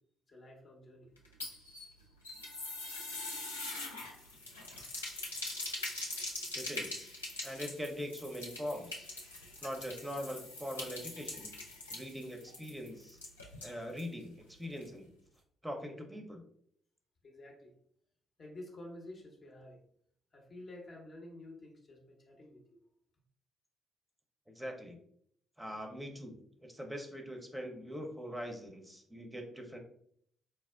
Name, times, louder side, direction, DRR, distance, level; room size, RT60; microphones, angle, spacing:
voice 1, 0.3-1.1 17.2-17.7 18.4-19.8 20.3-22.8, left 1 dB, 40° left, -1 dB, 0.9 m, -50 dB
sound 1, 1.2-14.1 14.4-14.5 14.8-14.9, left 2 dB, 85° left, 0.4 m, -43 dB
voice 2, 6.5-7.1 7.4-9.1 9.6-11.5 11.9-13.2 13.6-15.1 15.6-16.4 24.5-25.0 25.6-26.3 26.6-29.8, equal, 5° right, 3 dB, 0.7 m, -42 dB
4.4 x 2.0 x 2.4 m, 0.67 s
figure-of-eight pair, 40°, 0 cm